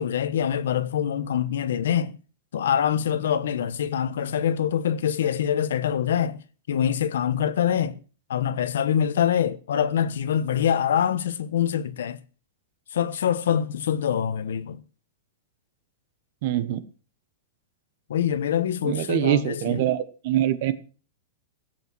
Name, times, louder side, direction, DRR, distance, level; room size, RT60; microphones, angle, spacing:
voice 1, 0.0-2.2 2.5-8.0 8.3-12.2 12.9-14.8 18.1-19.8, left 9 dB, 80° left, 1.1 m, -25 dB
voice 2, 16.4-16.8 18.8-20.7, right 12 dB, 40° right, 1.1 m, -24 dB
17.0 x 8.1 x 6.2 m
supercardioid pair, 180°, 0 cm